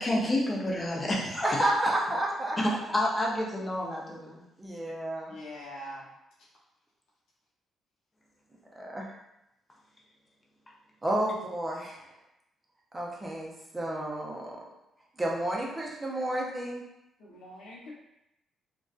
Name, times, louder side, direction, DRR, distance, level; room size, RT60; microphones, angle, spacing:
voice 1, 0.0-1.7 2.6-4.4, left 1 dB, 25° left, -2 dB, 0.6 m, -29 dB
voice 2, 1.4-2.6 4.6-5.4 8.7-9.1 11.0-12.2 12.9-14.6 15.1-16.8, right 1 dB, 20° right, -3 dB, 0.5 m, -31 dB
voice 3, 5.3-6.1 17.2-17.9, equal, 90° left, -5 dB, 0.7 m, -43 dB
2.5 x 2.2 x 2.3 m, 0.88 s
cardioid pair, 90°, 0 cm